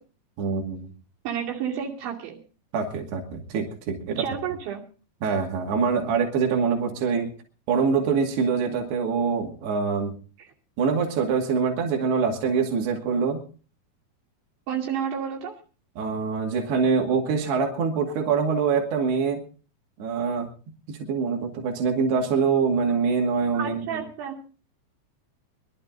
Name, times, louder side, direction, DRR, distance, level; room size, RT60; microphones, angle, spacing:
voice 1, 0.4-0.9 2.7-4.2 5.2-7.3 7.7-10.1 10.8-13.4 16.0-19.4 20.0-20.5 20.9-24.0, right 5 dB, 70° right, 1 dB, 4.3 m, -24 dB
voice 2, 1.3-2.4 4.2-4.8 10.4-10.5 14.7-15.6 23.5-24.4, right 8 dB, 85° right, -1 dB, 5.1 m, -30 dB
23.5 x 12.5 x 3.9 m, 0.37 s
omnidirectional pair, 5.1 m